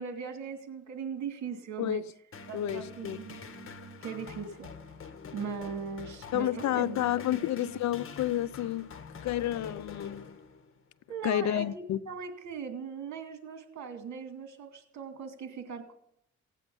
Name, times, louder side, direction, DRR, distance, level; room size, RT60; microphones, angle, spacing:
voice 1, 0.0-2.0 2.5-3.5 4.0-4.7 5.3-7.0 7.6-7.7 11.1-15.9, right 6 dB, 65° right, 2.5 m, -39 dB
sound 1, 2.3-10.8, left 4 dB, 45° left, 1.8 m, -46 dB
voice 2, 2.5-3.2 6.3-8.9 9.2-10.3 11.2-12.0, left 12 dB, 65° left, 0.6 m, -30 dB
17.0 x 9.1 x 7.0 m
cardioid pair, 90°, 30 cm